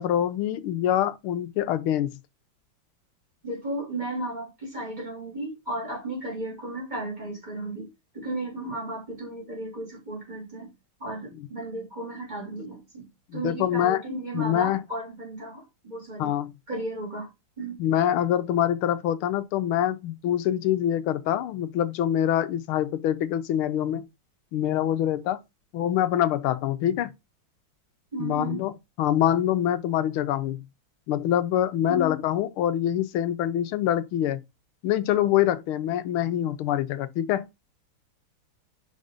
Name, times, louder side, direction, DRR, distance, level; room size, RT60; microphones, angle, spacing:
voice 1, 0.0-2.2 13.3-14.0 14.3-14.8 16.2-16.5 17.8-24.1 24.5-25.4 25.7-27.1 28.2-28.7 29.0-30.6 31.1-34.4 34.8-37.5, left 11 dB, 90° left, 1.6 m, -25 dB
voice 2, 3.4-10.7 11.0-16.3 16.7-17.3 17.6-17.8 28.1-28.6 31.9-32.2, right 1 dB, 20° right, 3.4 m, -34 dB
5.4 x 4.2 x 5.0 m
omnidirectional pair, 2.3 m